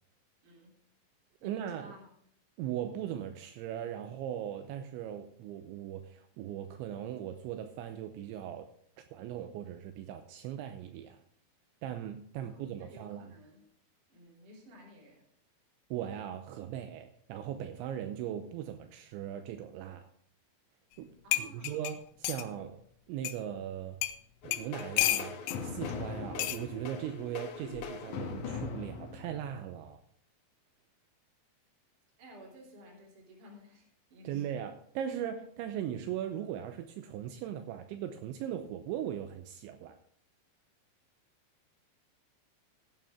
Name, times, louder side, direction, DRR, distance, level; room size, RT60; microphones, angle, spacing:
voice 1, 0.4-0.8 1.4-2.1 12.3-13.6 14.1-15.2 21.2-21.8 32.2-34.6, equal, 45° right, -4 dB, 4.3 m, -54 dB
voice 2, 1.4-1.9 2.6-11.2 11.8-13.3 15.9-20.1 21.0-22.8 23.1-24.0 24.4-25.4 25.6-30.0 34.2-40.0, right 10 dB, 80° right, 7 dB, 3.0 m, -39 dB
sound 1, 20.9-21.0 21.3-22.5 23.3-23.4 24.0-24.2 24.5-25.6 26.4-26.6 27.7-28.0, left 15 dB, 90° left, 3.1 m, -31 dB
sound 2, 24.4-29.9, left 5 dB, 70° left, 1.9 m, -41 dB
16.0 x 9.1 x 3.7 m, 0.65 s
omnidirectional pair, 5.4 m